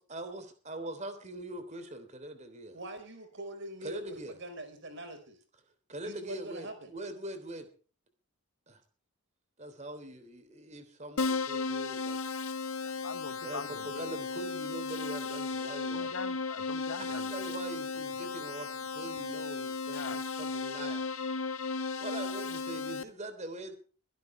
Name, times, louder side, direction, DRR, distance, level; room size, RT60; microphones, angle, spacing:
voice 1, 0.0-2.7 3.8-4.4 5.9-7.7 8.7-8.8 9.6-12.2 13.4-16.2 17.0-21.0 22.0-23.8, right 1 dB, 35° right, 3.3 m, -42 dB
voice 2, 2.7-5.4 6.0-6.9, right 1 dB, 55° right, 4.8 m, -43 dB
Keyboard (musical), 11.2-23.0, left 4 dB, 80° left, 1.6 m, -35 dB
voice 3, 12.8-14.0 15.9-17.5 19.9-20.2, left 4 dB, 65° left, 1.0 m, -43 dB
23.0 x 12.0 x 3.3 m
head